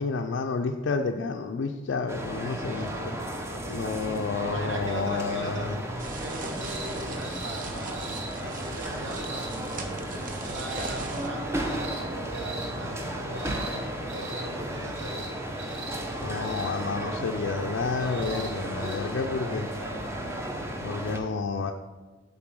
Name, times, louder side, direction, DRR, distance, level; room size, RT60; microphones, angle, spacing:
voice 1, 0.0-3.1 3.7-5.8 16.2-19.7 20.8-21.7, left 4 dB, 70° left, 3 dB, 0.4 m, -30 dB
sound 1, 2.1-21.2, right 1 dB, 15° right, 0.7 m, -34 dB
voice 2, 2.6-5.7 6.2-9.5 10.5-15.3 19.3-20.3, right 1 dB, 90° right, 2 dB, 1.1 m, -40 dB
sound 2, 6.0-11.3, right 3 dB, 45° right, 0.8 m, -40 dB
sound 3, 6.6-6.9 7.2-7.6 7.9-8.3 9.0-9.5 10.4-10.9 11.6-12.0 12.3-12.7 13.3-13.8 14.1-14.4 14.9-15.3 15.6-16.0 16.4-16.7 18.0-18.5 18.8-19.0 20.0-20.1, right 3 dB, 75° right, 2.2 m, -41 dB
7.5 x 3.9 x 6.1 m, 1.3 s
head